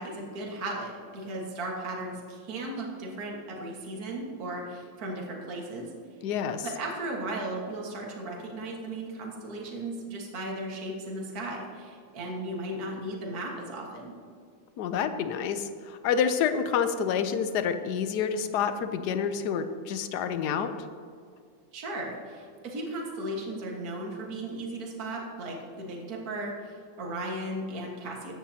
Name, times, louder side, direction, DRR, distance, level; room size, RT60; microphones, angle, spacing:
voice 1, 0.0-5.9 6.6-14.2 21.7-28.4, right 1 dB, 50° right, -1 dB, 2.0 m, -36 dB
voice 2, 6.2-6.7 14.8-20.7, left 7 dB, 70° left, 10 dB, 1.1 m, -28 dB
14.5 x 9.8 x 2.8 m, 2.1 s
omnidirectional pair, 2.2 m